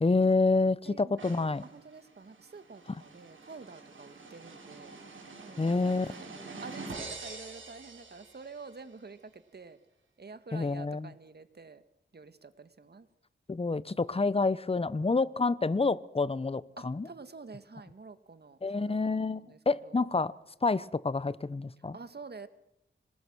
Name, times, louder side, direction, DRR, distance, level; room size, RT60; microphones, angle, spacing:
voice 1, 0.0-1.6 5.6-6.1 10.5-11.1 13.5-17.1 18.6-20.3 20.6-22.0, left 3 dB, 30° left, 0.9 m, -28 dB
voice 2, 0.9-1.2 1.6-4.9 5.4-9.8 10.2-11.8 12.1-13.1 16.8-20.1 21.9-22.5, right 4 dB, 55° right, 1.8 m, -48 dB
sound 1, 1.2-8.8, right 3 dB, 90° right, 6.0 m, -46 dB
26.5 x 20.0 x 6.3 m
cardioid pair, 60°, 20 cm